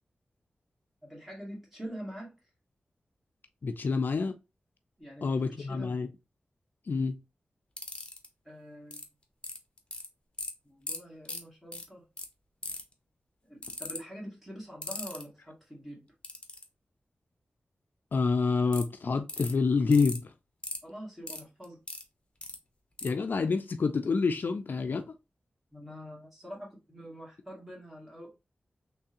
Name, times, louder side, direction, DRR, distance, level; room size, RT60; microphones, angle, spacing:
voice 1, 1.0-2.4 5.0-5.9 8.4-9.0 10.6-12.0 13.4-16.0 20.8-21.8 25.7-28.3, equal, 5° right, 2.0 m, -45 dB
voice 2, 3.6-4.3 5.2-6.1 6.9-7.2 18.1-20.3 23.0-25.0, left 4 dB, 60° left, 0.4 m, -27 dB
sound 1, 7.8-8.3 8.9-9.0 9.4-10.1 10.4-10.5 10.9-11.0 11.3-11.4 11.7-11.8 12.2-12.3 12.6-12.9 13.6-14.0 14.8-15.2 16.2-16.6 18.7-18.8 19.3-19.5 19.9-20.2 20.6-20.8 21.3-22.0 22.4-22.6 23.0-23.1, left 2 dB, 30° left, 0.9 m, -37 dB
3.5 x 3.2 x 2.8 m
wide cardioid pair, 80°, 4 cm